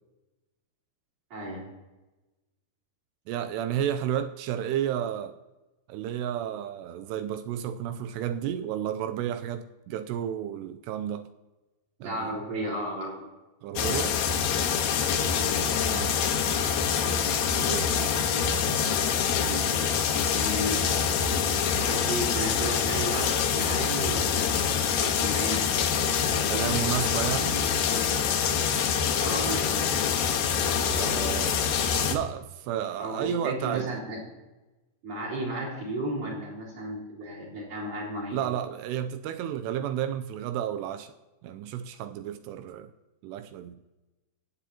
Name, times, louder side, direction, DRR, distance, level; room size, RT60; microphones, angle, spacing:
voice 1, 1.3-1.7 12.0-13.2 15.3-15.7 18.2-19.8 20.3-20.9 21.7-25.7 29.2-30.1 33.0-34.2 35.0-38.5, right 1 dB, 50° right, -3 dB, 5.1 m, -34 dB
voice 2, 3.3-5.4 5.9-11.3 12.0-12.3 13.6-14.2 15.8-16.3 17.6-18.3 26.5-27.6 30.9-31.6 32.1-33.9 38.3-41.1 41.4-42.9 43.2-43.8, right 10 dB, 85° right, 9 dB, 2.6 m, -32 dB
sound 1, 13.8-32.1, left 7 dB, 75° left, 3.1 m, -25 dB
24.0 x 8.3 x 2.9 m, 1.1 s
omnidirectional pair, 4.9 m